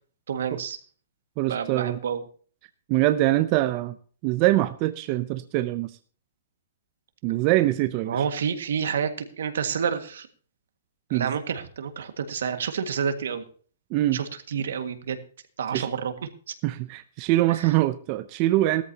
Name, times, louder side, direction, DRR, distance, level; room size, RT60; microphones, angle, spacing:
voice 1, 0.3-0.8 1.5-2.2 8.1-10.3 11.1-13.5 14.1-15.2 15.6-16.1 16.5-16.6 17.5-17.7, right 7 dB, 70° right, 8 dB, 1.7 m, -29 dB
voice 2, 1.4-2.0 2.9-3.9 4.2-5.9 7.2-8.3 11.1-11.4 13.9-14.2 15.7-15.9 16.6-18.8, right 16 dB, 25° right, 11 dB, 0.5 m, -23 dB
18.0 x 13.5 x 2.8 m, 0.42 s
hypercardioid pair, 175°, 0 cm